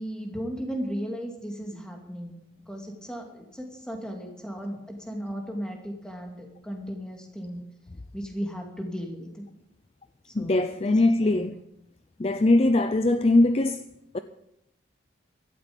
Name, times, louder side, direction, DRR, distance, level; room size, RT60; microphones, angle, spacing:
voice 1, 0.0-2.4 2.7-7.6 8.1-9.4 10.3-11.5, equal, 5° left, 2.6 m, -36 dB
voice 2, 10.3-11.6 12.2-13.9 14.1-14.2, left 2 dB, 30° left, 0.5 m, -21 dB
16.5 x 12.5 x 5.3 m
head